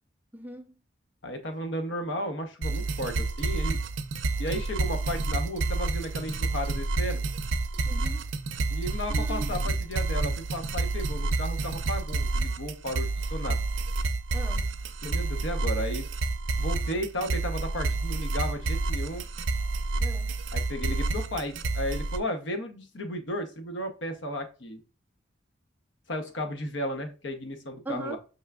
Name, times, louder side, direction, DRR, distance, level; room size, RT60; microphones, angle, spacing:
voice 1, 0.3-0.6 7.8-8.2 9.1-9.5 14.3-14.7 20.0-20.3 27.9-28.2, right 2 dB, 10° right, 0.3 m, -39 dB
voice 2, 1.2-3.8 4.4-7.2 8.7-13.6 15.0-16.1 16.6-19.2 20.5-24.8 26.1-28.2, equal, 75° left, 0.8 m, -34 dB
sound 1, 2.6-22.2, right 3 dB, 80° right, 0.5 m, -29 dB
5.2 x 3.3 x 2.3 m
head